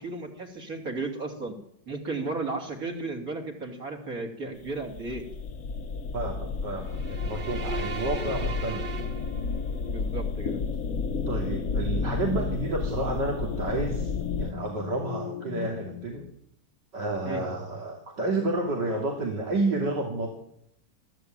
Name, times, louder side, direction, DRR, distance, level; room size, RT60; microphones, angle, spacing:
voice 1, 0.0-1.6 1.9-5.2 8.0-8.4 9.9-10.6 17.2-17.4, right 3 dB, 55° right, 2 dB, 3.5 m, -34 dB
sound 1, 4.6-14.5, left 4 dB, 55° left, 1.2 m, -32 dB
voice 2, 6.1-9.1 11.3-14.1 14.4-16.2 16.9-20.3, right 2 dB, 75° right, 0 dB, 3.3 m, -30 dB
sound 2, 6.8-9.9, right 7 dB, 30° right, 1.2 m, -38 dB
sound 3, 8.2-16.3, left 8 dB, 70° left, 1.7 m, -40 dB
22.0 x 14.0 x 9.1 m, 0.75 s
omnidirectional pair, 1.8 m